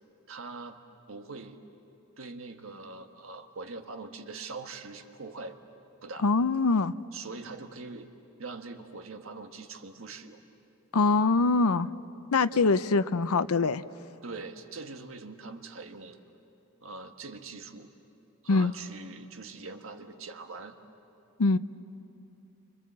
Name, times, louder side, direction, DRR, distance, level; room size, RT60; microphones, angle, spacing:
voice 1, 0.3-0.8 1.1-1.6 2.2-5.6 6.0-6.3 7.1-8.1 8.4-10.4 12.5-12.7 14.2-16.2 16.8-17.9 18.4-20.8, right 3 dB, 65° right, 5 dB, 1.5 m, -42 dB
voice 2, 6.2-6.9 10.9-11.9 12.3-13.8 18.5-18.7 21.4-21.6, left 3 dB, 85° left, 13 dB, 0.6 m, -23 dB
29.5 x 25.5 x 7.5 m, 2.9 s
head